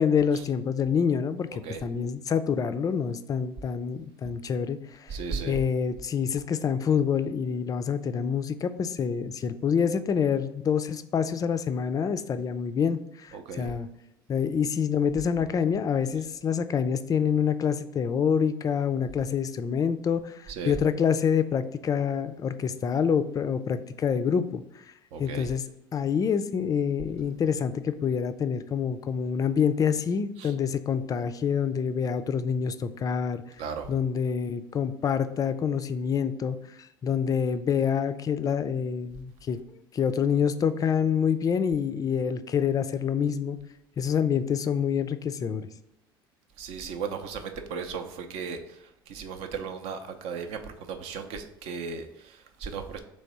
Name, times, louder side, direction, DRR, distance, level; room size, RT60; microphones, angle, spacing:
voice 1, 0.0-5.2 5.5-13.9 14.3-24.6 25.2-25.6 25.9-33.4 33.9-39.6 39.9-43.6 44.0-45.7, left 7 dB, 30° left, 11 dB, 0.3 m, -27 dB
voice 2, 5.1-5.6 13.3-13.7 20.5-20.8 25.1-25.5 30.4-30.5 33.6-33.9 46.6-53.0, right 5 dB, 60° right, 6 dB, 0.6 m, -36 dB
3.4 x 3.1 x 4.1 m, 0.89 s
hypercardioid pair, 65°, 12 cm